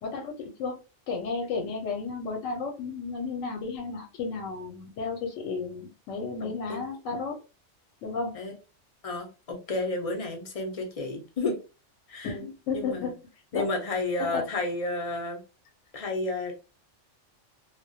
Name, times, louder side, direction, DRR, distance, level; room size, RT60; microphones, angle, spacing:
voice 1, 0.0-0.8 1.1-7.3 8.0-8.3 12.2-13.1 13.5-13.7 14.2-14.4, left 4 dB, 80° left, 1 dB, 1.0 m, -33 dB
voice 2, 6.4-6.8 8.3-8.5 9.0-11.6 12.1-12.3 12.7-13.1 13.5-15.4 15.9-16.5, left 2 dB, 40° left, 2 dB, 0.5 m, -31 dB
2.3 x 2.1 x 2.6 m, 0.31 s
omnidirectional pair, 1.3 m